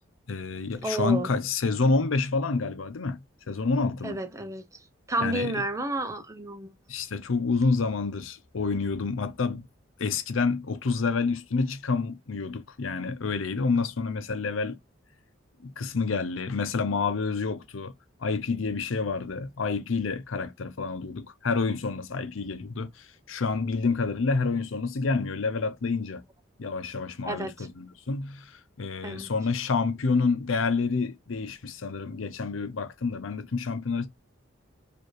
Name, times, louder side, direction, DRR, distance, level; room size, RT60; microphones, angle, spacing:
voice 1, 0.3-3.2 3.5-4.2 5.2-5.5 6.9-9.7 10.0-14.8 15.6-17.9 18.2-26.2 26.6-34.1, left 4 dB, 80° left, 0.7 m, -28 dB
voice 2, 0.8-1.3 4.0-4.6 5.1-6.7 27.2-27.7 29.0-29.3, right 2 dB, 15° right, 0.6 m, -31 dB
4.5 x 2.6 x 3.2 m
head